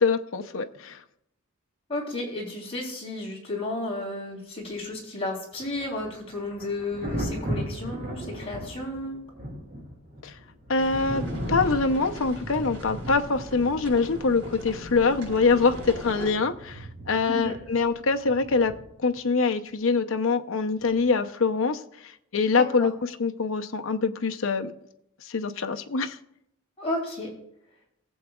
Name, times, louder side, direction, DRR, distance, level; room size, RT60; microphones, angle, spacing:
voice 1, 0.0-1.0 10.2-10.3 10.7-11.2 11.5-18.7 19.0-21.8 22.3-24.7 25.3-26.2, left 4 dB, 75° left, 6 dB, 0.7 m, -24 dB
voice 2, 1.9-9.2 17.3-17.6 22.5-22.9 26.8-27.3, left 2 dB, 25° left, -3 dB, 3.3 m, -33 dB
Thunder, 5.5-19.2 20.8-21.0, equal, 40° right, 2.5 m, -37 dB
sound 1, 10.8-16.3, equal, 80° right, 4.4 m, -40 dB
18.5 x 7.9 x 2.4 m, 0.77 s
head